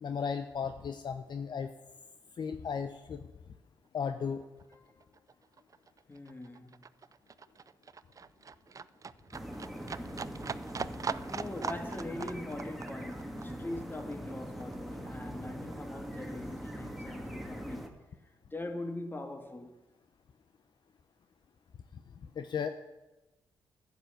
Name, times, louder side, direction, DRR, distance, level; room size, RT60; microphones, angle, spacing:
voice 1, 0.0-1.7 2.4-3.2 3.9-4.4 21.9-22.0 22.4-22.7, left 6 dB, 60° left, 0.7 m, -35 dB
Livestock farm animals working animals, 4.0-4.2 4.4-15.4 15.7-16.7 17.1-17.2, right 5 dB, 40° right, 0.4 m, -42 dB
voice 2, 4.7-5.1 6.1-6.9 11.3-17.9 18.5-19.7, left 2 dB, 25° left, 1.9 m, -42 dB
sound 1, 9.3-17.9, equal, ahead, 1.9 m, -42 dB
11.0 x 8.2 x 6.7 m
cardioid pair, 55°, 9 cm